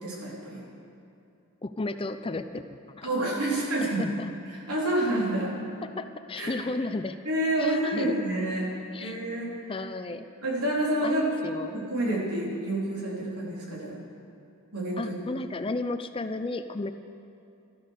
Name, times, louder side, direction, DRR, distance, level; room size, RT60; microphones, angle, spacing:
voice 1, 0.0-0.6 3.0-4.0 4.7-5.5 6.4-6.5 7.3-8.7 9.0-9.7 10.4-11.3 11.7-14.0 14.7-15.1, right 1 dB, 80° right, -4 dB, 4.0 m, -28 dB
voice 2, 1.6-3.1 3.8-4.3 5.8-7.2 7.6-8.2 8.9-9.2 9.7-10.3 11.0-11.8 15.0-16.9, left 2 dB, 25° left, 10 dB, 0.4 m, -33 dB
14.0 x 13.5 x 6.6 m, 2.7 s
head